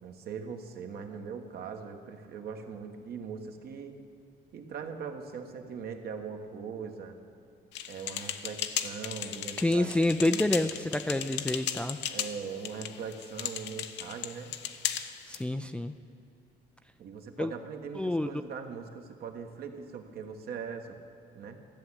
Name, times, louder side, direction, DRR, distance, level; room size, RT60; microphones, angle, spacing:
voice 1, 0.0-4.0 4.5-7.2 7.9-10.7 12.1-14.5 17.0-21.0 21.3-21.6, right 6 dB, 60° right, 4 dB, 1.5 m, -41 dB
sound 1, 7.7-15.4, left 10 dB, 80° left, 0.8 m, -36 dB
voice 2, 9.6-12.0 15.3-16.0 17.4-17.5 18.0-18.3, left 1 dB, 5° left, 8 dB, 0.4 m, -28 dB
14.0 x 7.3 x 9.8 m, 2.8 s
cardioid pair, 130°, 18 cm